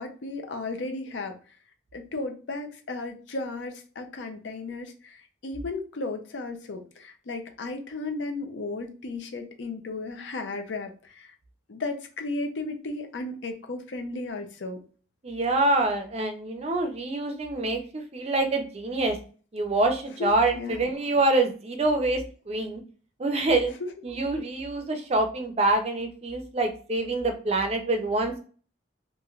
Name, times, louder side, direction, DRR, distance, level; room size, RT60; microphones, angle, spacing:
voice 1, 0.0-1.4 1.9-11.3 11.7-14.8 20.6-20.8 23.8-23.9, left 3 dB, 70° left, 5 dB, 0.5 m, -35 dB
voice 2, 15.2-19.2 19.5-22.8 23.2-23.7 24.0-28.4, right 2 dB, 35° right, 4 dB, 0.4 m, -26 dB
3.1 x 2.5 x 2.4 m, 0.40 s
head